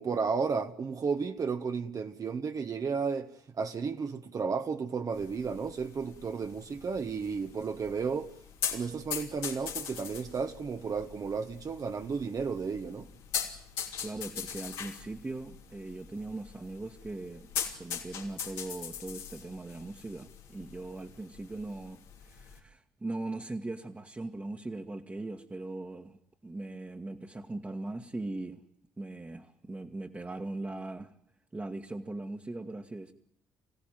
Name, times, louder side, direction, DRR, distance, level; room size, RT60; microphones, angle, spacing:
voice 1, 0.0-8.3 8.7-13.1, right 5 dB, 45° right, 1.4 m, -33 dB
sound 1, 5.1-22.6, left 8 dB, 75° left, 3.2 m, -41 dB
voice 2, 14.0-26.2 26.4-28.6 29.0-31.1 31.5-33.1, right 2 dB, 20° right, 1.7 m, -40 dB
26.0 x 16.5 x 9.2 m
hypercardioid pair, 50°, 8 cm